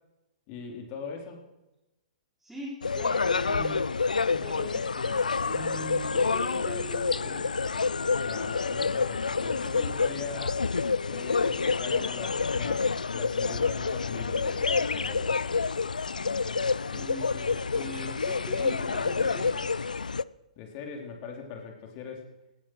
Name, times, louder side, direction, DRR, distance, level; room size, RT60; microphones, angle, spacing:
voice 1, 0.5-1.4 8.2-10.6 11.0-15.3 20.6-22.3, left 5 dB, 40° left, 1 dB, 4.2 m, -41 dB
voice 2, 2.4-3.8 4.3-7.5 16.9-19.7, right 1 dB, 5° right, -7 dB, 4.8 m, -41 dB
sound 1, 2.8-20.2, left 4 dB, 85° left, 0.4 m, -28 dB
18.0 x 11.0 x 6.4 m, 0.98 s
hypercardioid pair, 120°, 4 cm